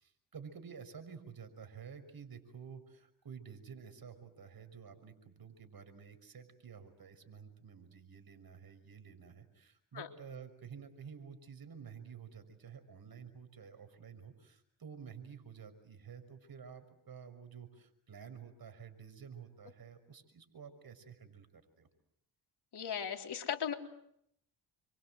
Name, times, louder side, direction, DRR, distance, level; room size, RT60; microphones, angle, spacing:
voice 1, 0.0-21.9, right 6 dB, 50° right, 9 dB, 6.1 m, -51 dB
voice 2, 22.7-23.7, left 8 dB, 55° left, 3 dB, 3.9 m, -37 dB
29.0 x 25.5 x 7.9 m, 0.74 s
cardioid pair, 70°, 47 cm